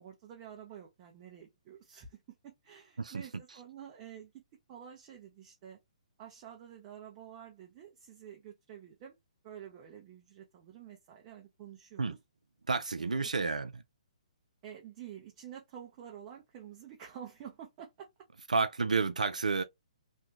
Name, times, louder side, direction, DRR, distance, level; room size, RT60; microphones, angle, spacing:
voice 1, 0.0-4.4 4.7-5.8 6.2-9.2 9.4-12.2 13.0-13.5 14.6-18.1, right 9 dB, 35° right, 0.7 m, -49 dB
voice 2, 3.0-3.4 12.0-12.2 12.7-13.7 18.5-19.6, right 4 dB, 80° right, 0.4 m, -30 dB
3.3 x 2.2 x 2.7 m
figure-of-eight pair, 130°, 4 cm